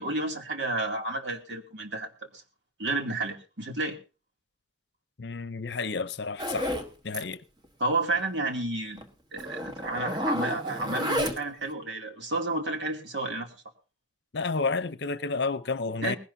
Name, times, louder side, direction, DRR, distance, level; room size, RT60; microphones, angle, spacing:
voice 1, 0.0-2.4 2.8-4.0 7.8-9.0 9.3-13.5 16.0-16.2, right 2 dB, 70° right, 2.7 m, -31 dB
voice 2, 5.2-6.8 7.0-7.4 14.3-16.2, left 4 dB, 65° left, 0.7 m, -30 dB
Zipper (clothing), 6.4-6.9 7.1-7.3 7.6-7.7 8.1-8.2 9.0-9.1 9.4-11.6, equal, 25° right, 1.4 m, -31 dB
20.0 x 17.0 x 2.7 m
head